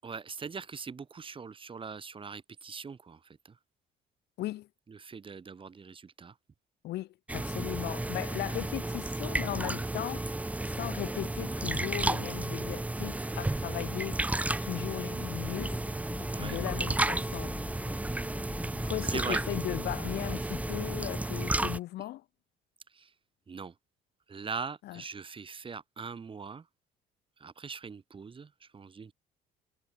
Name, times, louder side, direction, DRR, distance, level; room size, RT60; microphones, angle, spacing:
voice 1, 0.0-3.2 4.9-6.3 16.3-16.6 18.7-19.4 22.9-23.1 23.5-23.7 24.3-26.6 27.4-29.1, right 5 dB, 30° right, 6.5 m, -41 dB
voice 2, 4.4-4.7 6.8-10.3 10.7-14.2 14.6-15.8 16.4-17.5 18.9-22.2 24.8-25.0, left 15 dB, 75° left, 4.5 m, -37 dB
sound 1, 7.3-21.8, right 2 dB, 10° right, 1.1 m, -33 dB
sound 2, 15.4-21.0, left 3 dB, 15° left, 2.5 m, -43 dB
cardioid pair, 110°, 17 cm